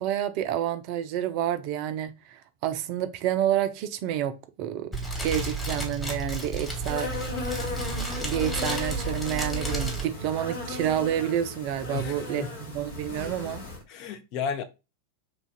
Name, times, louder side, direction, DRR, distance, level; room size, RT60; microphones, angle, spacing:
voice 1, 0.0-5.0 5.2-7.1 8.1-13.6, right 11 dB, 45° right, 0.4 m, -29 dB
Fire, 4.9-10.0, right 2 dB, 5° left, 1.3 m, -32 dB
Insect, 6.6-13.8, left 3 dB, 60° left, 1.1 m, -36 dB
voice 2, 11.9-12.5 13.9-14.6, left 6 dB, 40° left, 0.6 m, -33 dB
3.1 x 2.4 x 3.8 m
figure-of-eight pair, 90°, 0 cm